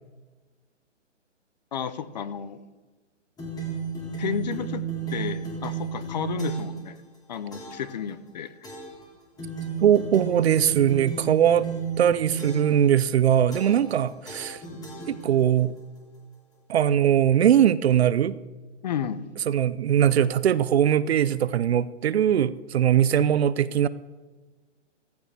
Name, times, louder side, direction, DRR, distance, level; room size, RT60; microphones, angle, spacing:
voice 1, 1.7-2.6 4.2-4.8 5.1-7.0 7.3-8.5 18.8-19.3, left 8 dB, 35° left, 14 dB, 0.6 m, -32 dB
sound 1, 3.4-6.8 7.5-7.9 8.6-9.0 9.4-12.8 13.5-14.0 14.3-15.6, right 6 dB, 10° left, 1.8 m, -33 dB
voice 2, 9.8-11.7 12.0-14.6 15.1-15.8 16.7-18.4 19.5-23.9, right 10 dB, 60° right, 17 dB, 0.6 m, -21 dB
15.0 x 14.0 x 3.4 m, 1.3 s
hypercardioid pair, 155°, 37 cm